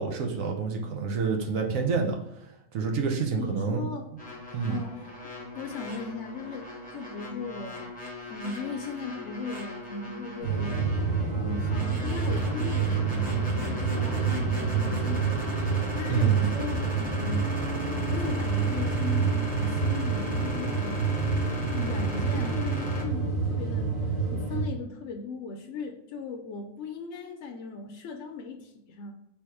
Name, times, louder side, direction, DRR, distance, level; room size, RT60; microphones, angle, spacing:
voice 1, 0.0-2.2 2.7-3.8 4.5-4.8 16.1-16.4, right 5 dB, 75° right, 2 dB, 1.1 m, -28 dB
voice 2, 3.4-4.1 4.7-5.1 5.6-7.9 8.3-10.8 11.4-17.5 18.1-21.0 21.7-29.1, left 4 dB, 70° left, 2 dB, 0.9 m, -38 dB
sound 1, 4.2-23.1, left 1 dB, 10° left, 0.7 m, -38 dB
sound 2, 10.4-24.6, right 5 dB, 35° right, 1.0 m, -28 dB
3.5 x 2.9 x 4.6 m, 0.88 s
omnidirectional pair, 1.4 m